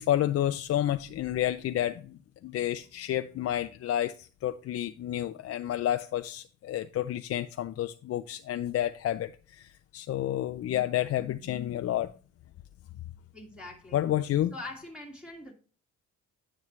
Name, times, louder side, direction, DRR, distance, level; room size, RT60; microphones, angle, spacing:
voice 1, 0.0-12.1 13.9-14.5, left 12 dB, 50° left, 0.4 m, -30 dB
voice 2, 13.3-14.0 14.5-15.5, left 2 dB, 5° right, 1.9 m, -43 dB
9.6 x 6.1 x 3.1 m
cardioid pair, 90°, 30 cm